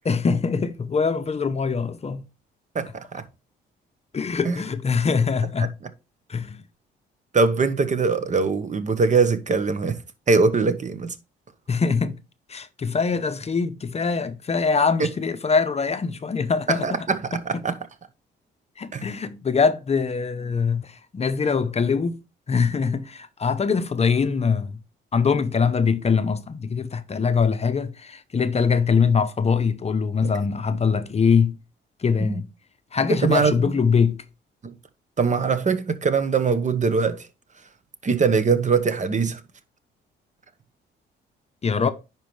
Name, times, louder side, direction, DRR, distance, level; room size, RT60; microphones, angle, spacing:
voice 1, 0.0-2.3 4.1-5.8 6.3-6.6 11.7-12.2 12.5-17.1 18.8-22.2 22.5-24.7 25.1-31.6 32.0-32.5 32.9-34.2 41.6-41.9, left 5 dB, 30° left, 0.7 m, -23 dB
voice 2, 2.7-3.2 4.4-4.6 5.6-5.7 7.3-10.0 10.3-11.1 15.0-15.1 16.7-17.7 18.9-19.1 30.2-30.3 32.2-32.4 33.1-33.7 34.6-34.7 35.2-37.2 38.0-39.4, right 4 dB, 40° right, 1.0 m, -22 dB
10.0 x 4.6 x 3.2 m
cardioid pair, 90°, 20 cm